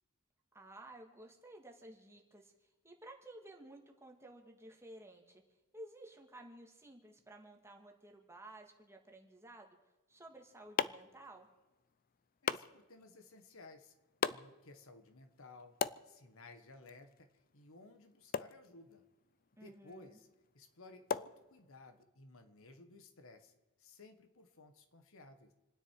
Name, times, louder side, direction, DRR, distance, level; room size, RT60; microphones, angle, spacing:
voice 1, 0.5-2.5 2.8-5.4 5.7-9.8 10.1-11.5 19.6-20.2, right 1 dB, 10° right, 2 dB, 2.1 m, -54 dB
sound 1, 10.1-22.0, left 7 dB, 40° left, 0.5 m, -43 dB
voice 2, 12.4-13.9 14.3-15.8 16.0-17.3 17.5-19.0 19.5-20.3 20.5-23.5 23.8-25.5, left 2 dB, 65° left, 8 dB, 1.6 m, -57 dB
28.5 x 9.8 x 4.8 m, 1.1 s
head